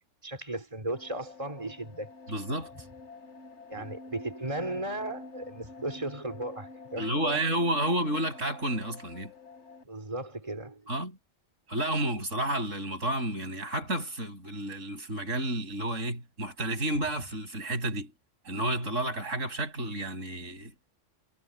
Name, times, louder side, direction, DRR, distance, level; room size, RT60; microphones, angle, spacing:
voice 1, 0.2-2.1 3.7-7.4 9.8-10.8, right 1 dB, 25° right, 4.0 m, -36 dB
sound 1, 0.9-9.8, left 3 dB, 65° left, 6.8 m, -48 dB
voice 2, 2.3-2.7 3.8-3.9 7.0-9.3 10.9-11.2 11.7-18.1 18.5-20.7, right 1 dB, 85° right, 7.6 m, -31 dB
omnidirectional pair, 1.3 m